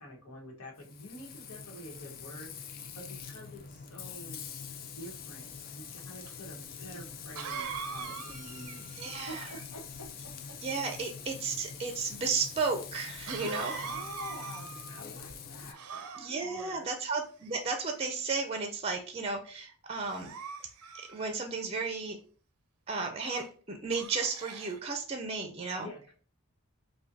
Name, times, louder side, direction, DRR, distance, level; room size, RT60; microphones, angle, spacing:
voice 1, 0.0-2.5 2.9-4.4 4.9-8.9 9.3-10.3 13.3-13.5 13.8-16.9 25.8-26.1, equal, 90° left, 1 dB, 1.2 m, -47 dB
Frying (food), 0.8-15.7, left 6 dB, 40° left, 0.3 m, -45 dB
Cough, 6.3-6.4 7.3-9.7 13.3-15.0 15.7-16.6 17.4-18.1 18.7-19.0 20.0-21.6 23.2-23.5 23.9-24.8, right 6 dB, 85° right, 0.5 m, -42 dB
voice 2, 9.0-9.5 10.6-13.7 16.2-20.3 20.9-22.2 22.9-25.9, right 4 dB, 25° right, 5 dB, 0.4 m, -34 dB
5.6 x 2.2 x 2.6 m, 0.41 s
head